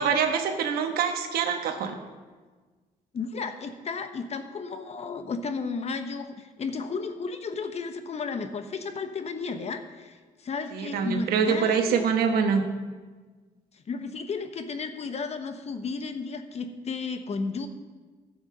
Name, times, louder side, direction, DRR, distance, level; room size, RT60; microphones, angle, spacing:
voice 1, 0.0-2.0 10.7-12.6, right 6 dB, 85° right, 6 dB, 1.2 m, -25 dB
voice 2, 3.1-12.1 13.7-17.7, left 4 dB, 45° left, 8 dB, 1.0 m, -33 dB
12.5 x 7.1 x 5.4 m, 1.4 s
cardioid pair, 95°, 15 cm